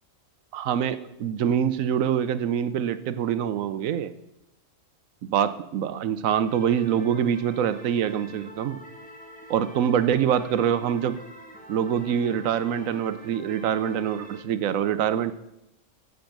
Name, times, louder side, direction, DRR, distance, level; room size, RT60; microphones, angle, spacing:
voice 1, 0.5-4.1 5.2-8.8 9.5-11.2 11.7-15.3, right 9 dB, 80° right, 12 dB, 1.0 m, -25 dB
sound 1, 6.5-14.4, equal, 5° left, 1.4 m, -46 dB
10.5 x 8.1 x 5.9 m, 0.85 s
omnidirectional pair, 1.4 m